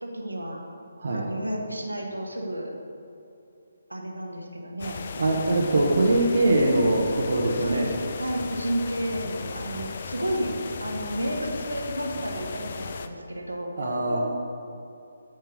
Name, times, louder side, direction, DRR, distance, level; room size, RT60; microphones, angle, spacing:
voice 1, 0.0-0.6 1.1-2.7 3.9-5.1 7.6-7.9 8.2-10.5 10.8-13.7 14.1-14.2, right 1 dB, 80° right, 0 dB, 1.3 m, -32 dB
sound 1, 4.8-13.1, left 5 dB, 45° left, 0.5 m, -36 dB
voice 2, 5.1-7.9 13.8-14.2, right 2 dB, 55° right, -1 dB, 1.0 m, -22 dB
8.9 x 4.5 x 6.2 m, 2.6 s
figure-of-eight pair, 140°, 0 cm